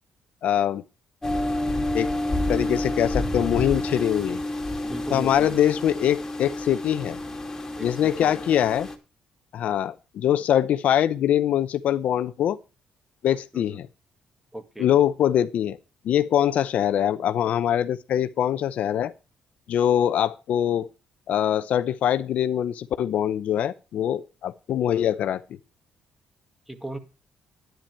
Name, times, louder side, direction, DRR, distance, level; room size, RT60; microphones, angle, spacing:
voice 1, 0.4-0.8 1.9-2.1 2.5-4.4 5.1-7.2 7.8-8.9 9.5-12.6 13.2-13.9 14.8-15.8 16.0-19.1 19.7-20.9 21.3-25.4, left 10 dB, 70° left, 0.7 m, -23 dB
sound 1, 1.2-8.9, left 1 dB, 15° left, 2.6 m, -29 dB
voice 2, 4.8-5.6 7.8-8.4 13.5-13.8 14.5-14.9 26.7-27.0, right 1 dB, 5° right, 2.0 m, -37 dB
10.5 x 10.5 x 4.5 m
cardioid pair, 100°, 3 cm